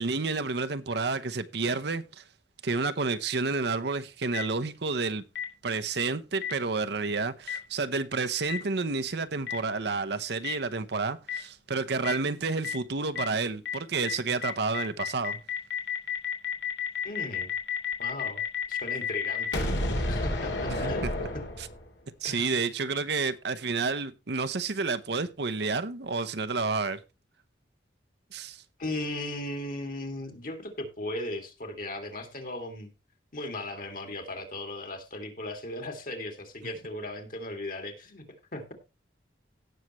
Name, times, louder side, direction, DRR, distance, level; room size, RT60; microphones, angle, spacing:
voice 1, 0.0-2.2 2.6-5.2 5.6-15.4 20.7-21.3 22.2-27.0 28.3-28.6, right 4 dB, 65° right, 0.8 m, -30 dB
Boom, 4.3-4.4 5.3-5.4 6.4-6.5 7.5-7.6 8.5-8.6 9.5-9.6 10.4-10.5 11.3-11.4 12.0-12.1 12.6-12.7 13.1-13.2 13.6-13.7 14.0-14.1 14.4-22.0, left 4 dB, 75° left, 2.9 m, -31 dB
voice 2, 17.0-17.5 18.0-19.7 20.1-21.4 22.2-22.6 28.8-32.9 33.3-38.3 38.5-38.7, left 1 dB, 50° left, 2.5 m, -37 dB
17.0 x 6.5 x 3.1 m
head